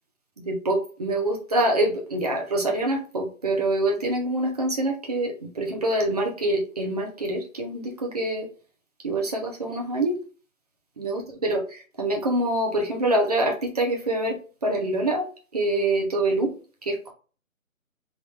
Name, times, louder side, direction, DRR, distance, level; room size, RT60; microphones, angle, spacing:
voice 1, 0.5-8.5 9.0-10.2 11.0-15.3 15.5-16.5 16.9-17.1, right 1 dB, 30° right, 1 dB, 0.7 m, -25 dB
3.6 x 2.6 x 3.3 m, 0.37 s
figure-of-eight pair, 155°, 42 cm